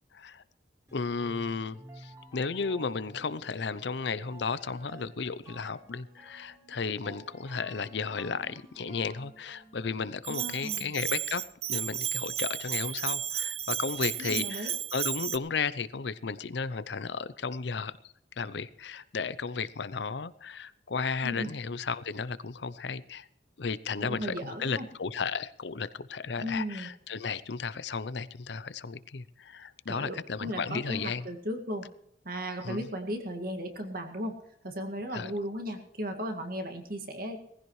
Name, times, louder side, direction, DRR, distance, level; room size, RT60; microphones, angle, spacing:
voice 1, 0.1-0.4 0.9-11.4 11.7-18.0 18.4-23.3 23.6-31.3 32.6-32.9 35.1-35.3, left 5 dB, 65° left, 16 dB, 0.6 m, -34 dB
sound 1, 0.9-10.1, right 1 dB, 20° right, 3.7 m, -52 dB
Bell, 10.2-15.4, right 11 dB, 35° right, 0.4 m, -33 dB
voice 2, 10.3-10.9 14.2-14.7 21.2-21.5 24.0-24.9 26.4-26.9 29.9-31.9 32.3-34.4 34.6-37.4, equal, 50° right, 5 dB, 2.0 m, -36 dB
19.5 x 15.0 x 3.2 m, 0.73 s
head